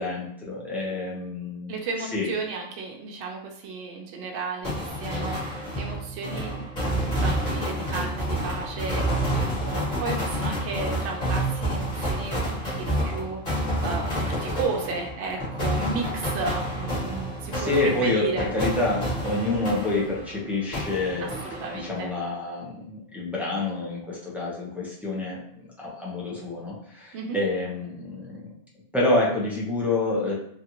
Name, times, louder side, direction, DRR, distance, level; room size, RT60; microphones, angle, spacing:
voice 1, 0.0-2.3 17.5-21.3 21.7-28.5 28.9-30.3, left 2 dB, ahead, -6 dB, 0.5 m, -28 dB
voice 2, 1.7-9.3 9.6-18.5 21.2-22.1 27.1-27.4, right 4 dB, 70° right, 1 dB, 0.8 m, -34 dB
sound 1, 4.6-20.4 20.7-22.1, equal, 40° left, 1.3 m, -29 dB
3.1 x 2.4 x 2.9 m, 0.67 s
omnidirectional pair, 1.3 m